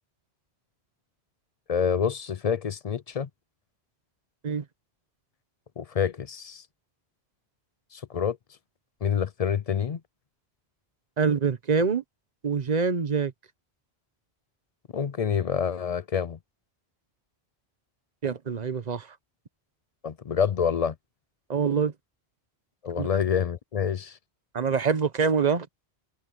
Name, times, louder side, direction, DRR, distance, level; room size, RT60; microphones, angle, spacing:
voice 1, 1.7-3.3 5.8-6.6 7.9-8.4 9.0-10.0 14.9-16.4 20.0-20.9 22.8-24.2, left 7 dB, 50° left, 0.5 m, -27 dB
voice 2, 11.2-12.0 12.4-13.3 18.2-19.2 21.5-21.9 23.0-23.1 24.5-25.7, right 5 dB, 40° right, 1.1 m, -25 dB
omnidirectional pair, 1.1 m